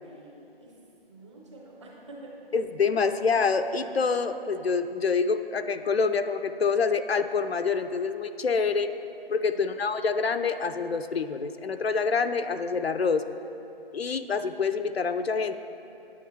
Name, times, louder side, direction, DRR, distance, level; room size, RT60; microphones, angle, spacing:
voice 1, 0.0-0.7 1.1-2.3 9.5-9.7, right 2 dB, 30° right, -3 dB, 1.2 m, -48 dB
voice 2, 2.5-8.9 9.3-13.3 13.9-15.6, left 5 dB, 75° left, 9 dB, 0.5 m, -26 dB
9.4 x 7.7 x 4.0 m, 2.9 s
figure-of-eight pair, 150°, 31 cm